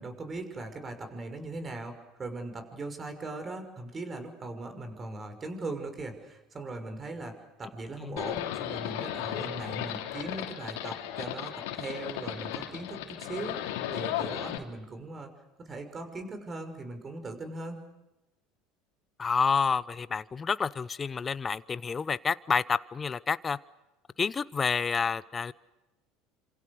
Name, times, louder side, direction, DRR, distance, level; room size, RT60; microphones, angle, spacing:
voice 1, 0.0-15.3 15.6-17.8, right 2 dB, 30° right, 7 dB, 6.0 m, -39 dB
Livestock farm animals working animals, 8.2-14.6, left 12 dB, 70° left, 2.8 m, -35 dB
voice 2, 19.2-23.6 24.2-25.5, left 5 dB, 30° left, 17 dB, 0.9 m, -29 dB
28.5 x 27.0 x 6.5 m, 1.0 s
hypercardioid pair, 75°, 0 cm